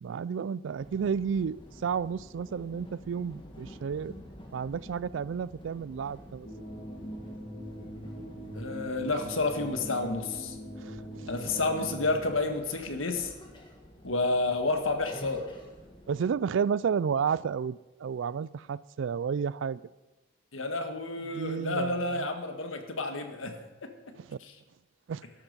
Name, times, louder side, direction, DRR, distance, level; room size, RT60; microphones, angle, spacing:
voice 1, 0.0-4.1 4.5-6.5 10.8-11.6 16.1-19.8 21.3-22.3 24.1-24.4 25.1-25.2, right 6 dB, 65° right, 0.3 m, -32 dB
sound 1, 0.8-16.3, equal, 25° left, 1.7 m, -49 dB
sound 2, 6.4-12.3, right 1 dB, 45° left, 3.0 m, -42 dB
voice 2, 8.5-10.6 11.3-13.3 14.0-15.4 20.5-23.9 24.4-24.5, left 2 dB, 85° left, 1.5 m, -30 dB
12.5 x 12.0 x 5.3 m
head